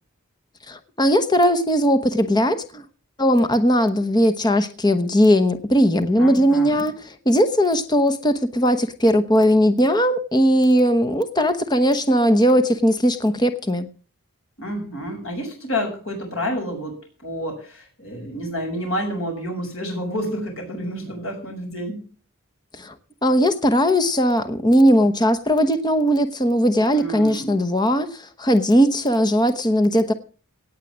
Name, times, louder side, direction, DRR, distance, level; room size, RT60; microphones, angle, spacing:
voice 1, 0.7-2.8 3.2-6.9 7.3-13.9 22.7-22.9 23.2-30.1, equal, 20° left, 1.0 m, -18 dB
voice 2, 6.2-6.9 14.6-22.0 26.9-27.5, equal, 65° left, 7.1 m, -29 dB
18.0 x 7.6 x 7.4 m
head